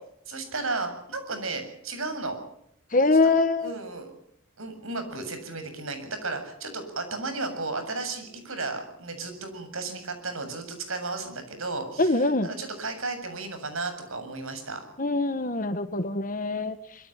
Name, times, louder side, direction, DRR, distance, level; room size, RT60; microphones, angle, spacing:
voice 1, 0.3-2.4 3.2-4.1 4.6-14.9, right 3 dB, 85° right, 8 dB, 7.4 m, -34 dB
voice 2, 2.9-3.7 12.0-12.5 15.0-16.8, left 3 dB, 40° left, 10 dB, 1.5 m, -23 dB
25.0 x 24.5 x 5.8 m, 0.73 s
head